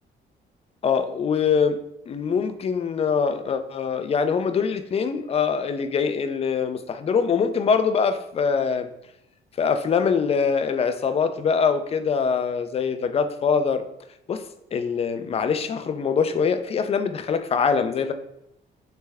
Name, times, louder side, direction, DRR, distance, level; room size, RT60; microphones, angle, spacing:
voice 1, 0.8-1.8 2.1-8.9 9.6-13.8 14.3-18.1, left 6 dB, 30° left, 9 dB, 0.3 m, -23 dB
3.3 x 3.3 x 3.3 m, 0.80 s
cardioid pair, 90°, 20 cm